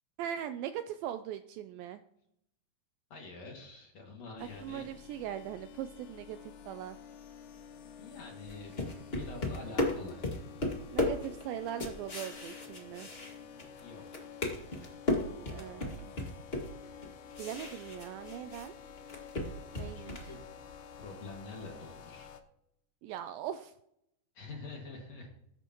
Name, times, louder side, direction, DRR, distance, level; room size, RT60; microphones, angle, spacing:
voice 1, 0.2-2.0 4.4-7.0 10.9-13.1 15.5-16.1 17.4-18.7 19.8-20.3 23.0-23.7, right 10 dB, 80° right, 10 dB, 2.1 m, -40 dB
voice 2, 3.1-4.9 8.0-8.8 9.1-10.3 13.8-14.1 19.9-20.5 21.0-22.3 24.3-25.3, left 3 dB, 50° left, 1 dB, 2.9 m, -46 dB
sound 1, 4.4-22.4, left 7 dB, 70° left, 2.0 m, -50 dB
sound 2, 8.5-13.8 14.1-18.7 19.0-20.3, left 1 dB, 30° left, 1.1 m, -35 dB
20.0 x 10.5 x 3.0 m, 0.79 s
omnidirectional pair, 4.5 m